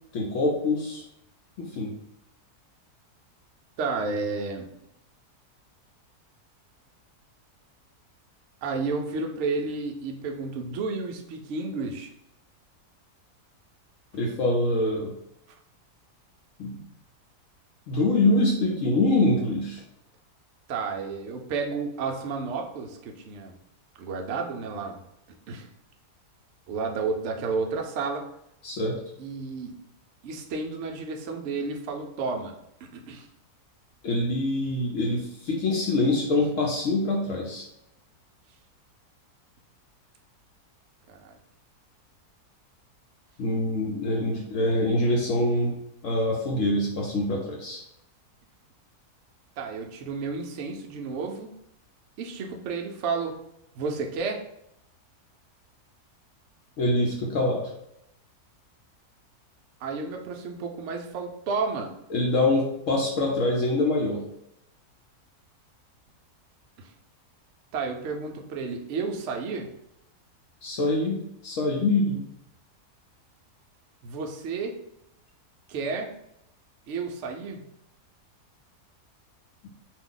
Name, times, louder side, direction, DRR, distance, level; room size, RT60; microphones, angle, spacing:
voice 1, 0.1-1.0 1.6-1.9 14.1-15.1 16.6-16.8 17.9-19.8 28.6-29.0 34.0-37.6 43.4-45.7 46.0-47.8 56.8-57.7 62.1-64.2 70.6-72.2, left 2 dB, 65° left, -1 dB, 0.8 m, -25 dB
voice 2, 3.8-4.7 8.6-12.1 20.7-23.5 24.0-25.0 25.5-25.7 26.7-28.2 29.2-29.7 30.2-32.5 32.8-33.3 41.1-41.3 49.6-51.5 52.2-53.3 53.7-54.4 59.8-61.9 66.8-66.9 67.7-69.7 74.0-74.7 75.7-76.1 76.9-77.6, right 4 dB, 65° right, 2 dB, 0.7 m, -31 dB
2.7 x 2.3 x 3.7 m, 0.79 s
omnidirectional pair, 1.7 m